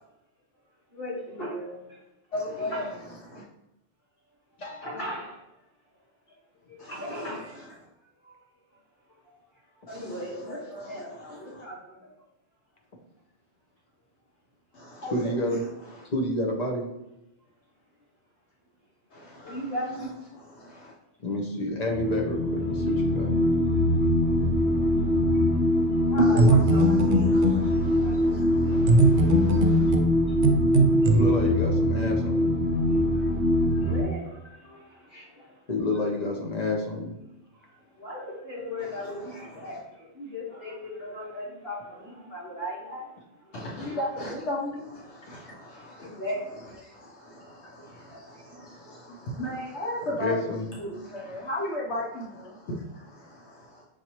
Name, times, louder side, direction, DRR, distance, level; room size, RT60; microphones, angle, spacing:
voice 1, 0.9-2.0 2.4-3.0 4.8-5.4 6.3-6.4 6.7-7.7 8.2-8.4 9.1-9.2 9.7-12.1 19.3-20.2 25.0-25.6 25.9-28.4 29.2-30.0 30.3-30.5 30.8-31.5 32.8-35.6 36.0-36.1 37.6-44.3 45.7-46.7 47.0-47.1 47.6-48.7, left 1 dB, 60° left, -5 dB, 1.7 m, -39 dB
voice 2, 2.3-2.8 15.0-15.2 26.2-26.4 43.8-44.7 49.5-50.3 50.8-50.9 51.3-52.0, left 1 dB, 80° left, -5 dB, 1.2 m, -31 dB
voice 3, 15.1-15.6 16.1-16.8 21.2-23.3 31.1-32.6 35.7-37.2 45.3-45.4 50.2-50.7, left 1 dB, 40° left, 1 dB, 0.9 m, -29 dB
sound 1, 21.9-34.0, left 1 dB, 15° right, 0.5 m, -23 dB
sound 2, 26.2-27.7 28.9-31.2, right 2 dB, 80° right, 0.9 m, -21 dB
6.3 x 2.7 x 3.0 m, 0.92 s
omnidirectional pair, 1.1 m